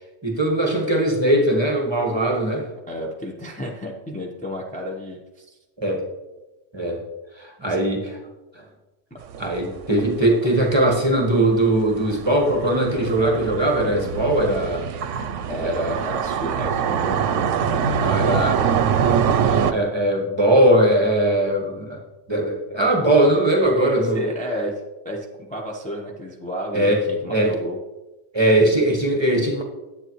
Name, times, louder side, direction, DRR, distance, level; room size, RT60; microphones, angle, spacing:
voice 1, 0.2-2.7 5.8-6.0 6.7-7.0 7.4-8.0 9.4-14.8 15.6-16.0 18.0-18.6 19.5-22.0 22.3-24.3 26.7-27.6 28.3-29.6, right 1 dB, 20° right, 1 dB, 1.3 m, -20 dB
voice 2, 2.9-5.6 7.7-7.8 9.1-9.2 15.5-18.0 24.0-27.8, equal, 5° left, -2 dB, 0.9 m, -32 dB
sound 1, 9.3-19.7, right 7 dB, 80° right, 0.9 m, -24 dB
9.9 x 8.7 x 3.1 m, 1.1 s
omnidirectional pair, 1.3 m